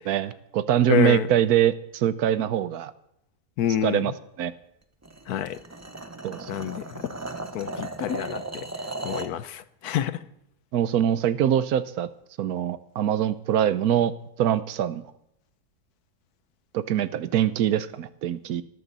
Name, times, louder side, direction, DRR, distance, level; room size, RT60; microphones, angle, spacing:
voice 1, 0.0-2.9 3.8-4.1 4.4-4.5 6.2-6.7 10.7-12.1 12.4-14.1 14.4-15.1 16.7-18.6, right 10 dB, 80° right, 14 dB, 1.2 m, -23 dB
voice 2, 0.9-1.3 3.6-4.1 5.3-5.6 6.5-7.0 7.5-8.6 9.0-10.2, left 11 dB, 90° left, 14 dB, 1.3 m, -28 dB
sound 1, 5.0-9.4, right 2 dB, 15° right, 0.6 m, -36 dB
18.0 x 13.5 x 4.1 m, 0.80 s
omnidirectional pair, 1.6 m